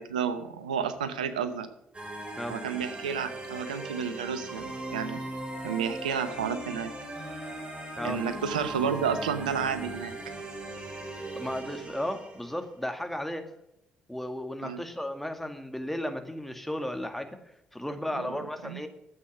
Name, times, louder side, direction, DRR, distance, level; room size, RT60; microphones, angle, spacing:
voice 1, 0.0-1.7 2.5-5.2 5.6-6.9 8.0-10.1 14.6-14.8 18.1-18.4 18.6-18.8, right 7 dB, 90° right, 10 dB, 0.8 m, -31 dB
sound 1, 1.9-12.7, right 1 dB, 25° right, 5.4 m, -39 dB
voice 2, 11.3-13.5 14.1-17.4 17.7-18.9, left 1 dB, 5° left, 6 dB, 2.0 m, -34 dB
12.0 x 8.1 x 6.1 m, 0.85 s
hypercardioid pair, 45°, 4 cm